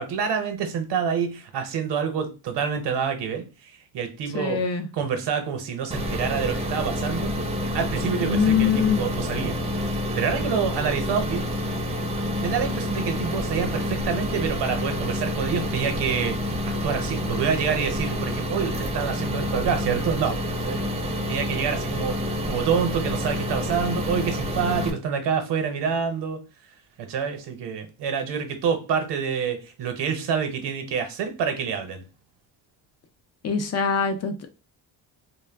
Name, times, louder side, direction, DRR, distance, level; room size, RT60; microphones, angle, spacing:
voice 1, 0.0-7.3 7.7-11.5 12.4-26.4 27.0-32.0, right 7 dB, 75° right, 0.8 m, -27 dB
voice 2, 4.3-4.9 8.2-9.0 33.4-34.5, left 7 dB, 40° left, 0.5 m, -23 dB
sound 1, 5.9-24.9, left 1 dB, 15° right, 0.5 m, -28 dB
2.2 x 2.1 x 3.3 m
cardioid pair, 110°, 42 cm